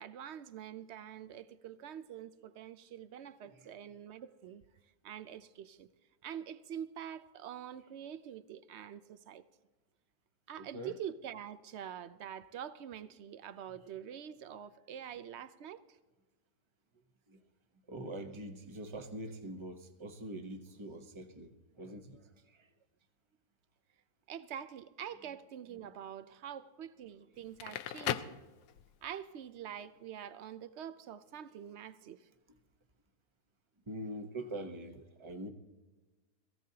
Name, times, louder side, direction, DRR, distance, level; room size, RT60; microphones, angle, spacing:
voice 1, 0.0-4.6 5.0-5.9 6.2-9.4 10.5-15.8 24.3-28.4 29.0-32.3, right 9 dB, 60° right, 0.7 m, -45 dB
voice 2, 10.6-10.9 17.3-17.4 17.9-22.7 33.9-35.5, right 1 dB, 20° right, 0.9 m, -44 dB
Crackle, 27.4-29.1, left 11 dB, 80° left, 1.2 m, -38 dB
21.5 x 15.5 x 2.8 m
omnidirectional pair, 1.7 m